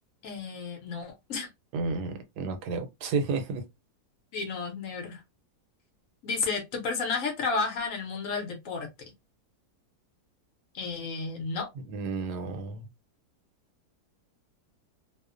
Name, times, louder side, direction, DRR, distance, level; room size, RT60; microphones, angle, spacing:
voice 1, 0.2-1.5 4.3-5.2 6.2-8.9 10.7-11.7, left 4 dB, 65° left, 0.9 m, -32 dB
voice 2, 1.7-3.6 11.9-12.9, right 4 dB, 80° right, 1.2 m, -31 dB
2.7 x 2.0 x 2.4 m
omnidirectional pair, 1.7 m